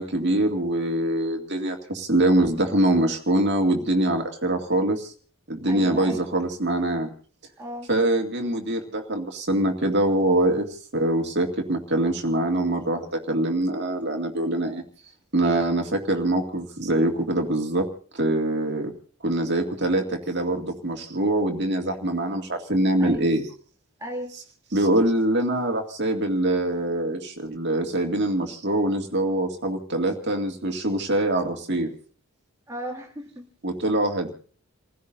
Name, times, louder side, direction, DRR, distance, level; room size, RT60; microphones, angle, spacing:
voice 1, 0.0-5.1 5.5-7.1 7.9-10.6 10.9-14.8 15.3-17.9 18.1-18.9 19.2-23.4 24.7-31.9 33.6-34.3, right 1 dB, 50° right, 3 dB, 2.2 m, -24 dB
voice 2, 5.7-6.2 7.6-7.9 23.0-23.3 24.0-24.4 32.7-33.5, right 1 dB, 15° right, -1 dB, 2.4 m, -35 dB
29.5 x 16.0 x 2.7 m, 0.43 s
head